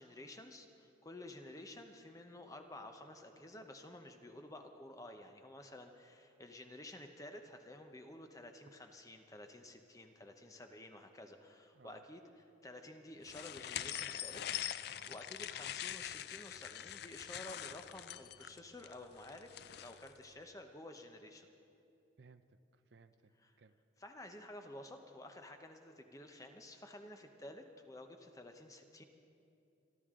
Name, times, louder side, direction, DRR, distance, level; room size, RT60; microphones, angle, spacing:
voice 1, 0.0-12.3 12.6-14.4 14.8-19.5 19.8-21.5 23.4-23.5 24.0-29.0, left 1 dB, 15° left, 5 dB, 0.8 m, -52 dB
sound 1, 13.3-20.1, left 11 dB, 55° left, 0.4 m, -44 dB
voice 2, 14.9-15.2 22.2-23.8, right 4 dB, 65° right, 11 dB, 0.6 m, -62 dB
27.5 x 12.0 x 3.7 m, 2.7 s
head